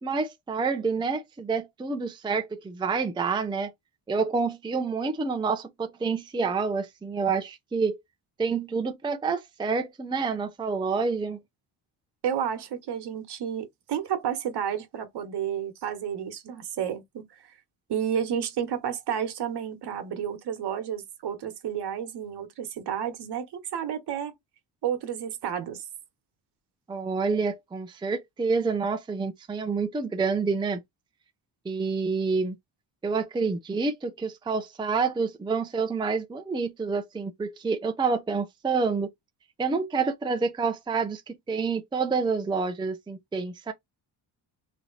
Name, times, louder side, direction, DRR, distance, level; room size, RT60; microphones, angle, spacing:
voice 1, 0.0-3.7 4.1-8.0 8.4-11.4 26.9-30.8 31.7-32.6 33.0-39.1 39.6-43.7, right 4 dB, 10° right, 0.5 m, -28 dB
voice 2, 12.2-17.3 17.9-24.3 24.8-25.8, right 9 dB, 65° right, 1.3 m, -31 dB
3.2 x 2.7 x 4.0 m
cardioid pair, 130°, 42 cm